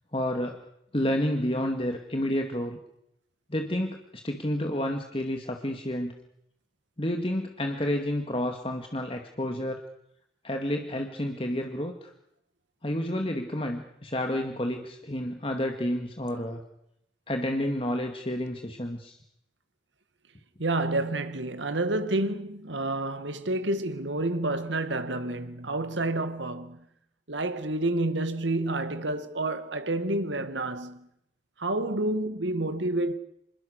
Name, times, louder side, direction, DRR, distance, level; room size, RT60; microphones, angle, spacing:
voice 1, 0.1-0.6 0.9-2.8 3.5-6.1 7.0-9.8 10.4-12.1 12.8-16.6 17.3-19.2, left 1 dB, 30° left, 2.1 m, -30 dB
voice 2, 20.6-26.9 27.3-31.1 31.6-33.2, right 2 dB, 90° right, 2.1 m, -29 dB
27.0 x 21.5 x 6.6 m
head